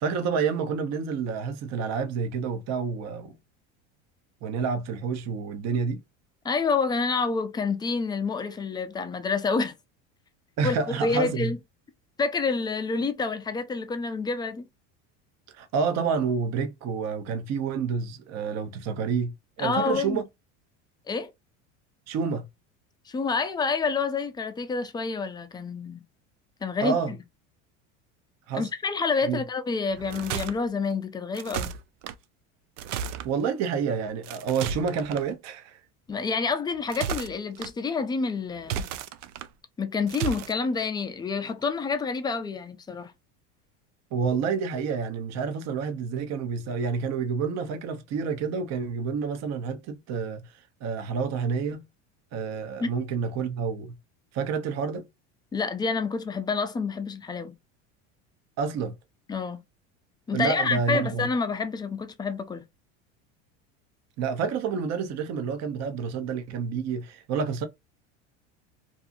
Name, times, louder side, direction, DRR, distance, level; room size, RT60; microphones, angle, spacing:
voice 1, 0.0-3.4 4.4-6.0 10.6-11.5 15.5-19.3 19.6-20.2 22.1-22.4 26.8-27.1 28.5-28.7 29.2-29.4 33.2-35.8 44.1-50.4 50.8-51.8 52.3-53.9 54.3-55.1 58.6-58.9 60.3-61.3 64.2-67.7, right 6 dB, 45° right, 0.7 m, -28 dB
voice 2, 6.4-9.7 10.6-11.6 12.2-14.7 19.6-20.2 21.1-21.3 23.1-26.0 26.6-27.0 28.5-31.7 36.1-38.8 39.8-43.1 52.8-52.9 55.5-57.5 59.3-59.6 60.3-62.6, left 4 dB, 15° left, 0.3 m, -28 dB
sound 1, 29.9-30.5 31.3-32.1 32.8-33.3 34.2-35.2 36.7-37.7 38.6-39.5 40.1-40.5, right 7 dB, 80° right, 0.5 m, -33 dB
2.6 x 2.5 x 2.5 m
supercardioid pair, 110°, 36 cm